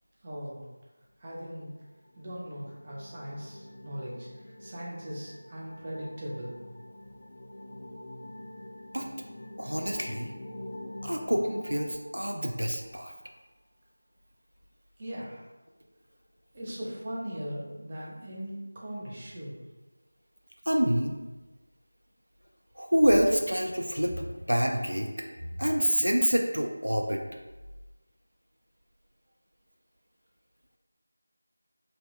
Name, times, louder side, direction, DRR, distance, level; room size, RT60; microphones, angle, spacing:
voice 1, 0.2-0.6 1.2-1.7 2.2-6.6 15.0-15.5 16.5-19.6, equal, 25° right, -5 dB, 0.6 m, -39 dB
sound 1, 1.9-12.6, left 1 dB, 35° left, 0.4 m, -46 dB
voice 2, 9.6-10.3 11.0-13.1 20.7-21.2 22.8-27.2, equal, 90° right, 3 dB, 0.3 m, -27 dB
2.8 x 2.2 x 3.1 m, 1.2 s
figure-of-eight pair, 170°, 0 cm